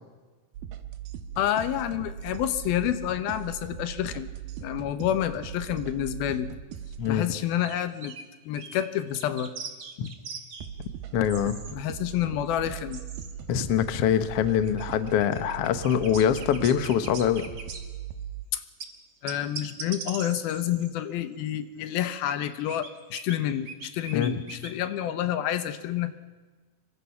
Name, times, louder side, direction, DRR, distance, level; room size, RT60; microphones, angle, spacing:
sound 1, 0.5-7.2 10.6-18.4, right 9 dB, 80° right, 3.0 m, -39 dB
voice 1, 1.4-4.3 4.6-6.5 7.1-8.2 8.5-9.5 11.7-13.0 18.5-18.6 19.2-26.1, left 11 dB, 85° left, 11 dB, 2.9 m, -29 dB
sound 2, 7.6-8.2 8.5-8.9 9.1-10.7 11.3-11.7 12.1-12.2 12.9-13.3 14.2-18.0 18.8-18.9 19.3-20.9 22.1-23.4 23.7-24.7, right 5 dB, 45° right, 2.3 m, -41 dB
voice 2, 11.1-11.6 13.5-17.4 24.1-24.3, left 9 dB, 65° left, 10 dB, 1.5 m, -24 dB
26.0 x 22.5 x 5.8 m, 1.3 s
omnidirectional pair, 4.2 m